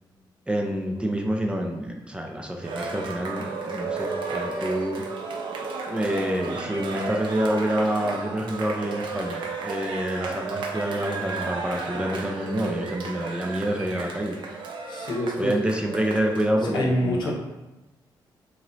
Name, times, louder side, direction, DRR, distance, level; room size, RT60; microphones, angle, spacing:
voice 1, 0.5-5.0 5.9-14.3 15.4-17.3, right 1 dB, 10° right, 2 dB, 0.4 m, -27 dB
Cheering, 2.6-16.5, right 4 dB, 75° right, 0.5 m, -33 dB
voice 2, 14.9-15.6 16.6-17.3, left 1 dB, 65° left, 0 dB, 0.8 m, -26 dB
3.0 x 2.7 x 3.9 m, 1.0 s
cardioid pair, 120°, 8 cm